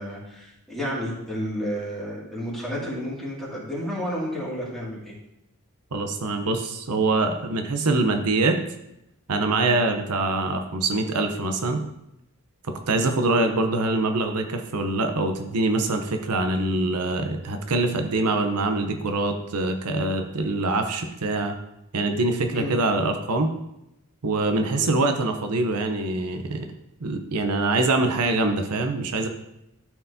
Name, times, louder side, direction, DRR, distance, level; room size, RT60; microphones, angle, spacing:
voice 1, 0.0-5.1 22.5-22.7 24.7-24.9, equal, ahead, -6 dB, 2.3 m, -31 dB
voice 2, 5.9-8.6 9.3-11.8 12.9-21.5 21.9-23.5 24.2-26.7 27.0-29.3, right 2 dB, 90° right, 5 dB, 0.8 m, -24 dB
12.5 x 4.6 x 2.7 m, 0.85 s
head